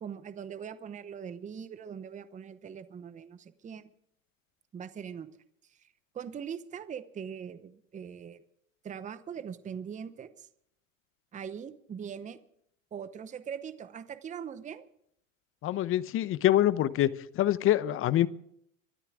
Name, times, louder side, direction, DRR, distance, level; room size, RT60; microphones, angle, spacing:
voice 1, 0.0-3.9 4.7-5.3 5.7-5.9 6.1-8.4 8.8-10.5 11.3-12.4 12.9-14.8, right 7 dB, 20° right, 0.9 m, -41 dB
voice 2, 15.6-17.1 17.3-18.3, left 13 dB, 35° left, 0.9 m, -25 dB
24.0 x 12.5 x 3.7 m
hypercardioid pair, 100°, 39 cm